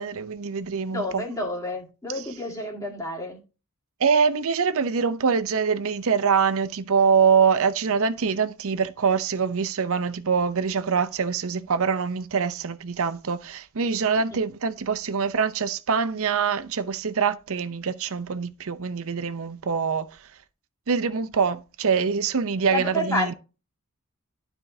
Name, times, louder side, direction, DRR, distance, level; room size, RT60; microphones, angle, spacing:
voice 1, 0.0-1.2 4.0-20.1 20.9-23.3, right 6 dB, 65° right, 0.6 m, -24 dB
voice 2, 0.9-3.4 22.7-23.3, left 1 dB, 15° left, 2.0 m, -29 dB
12.0 x 4.5 x 2.7 m
head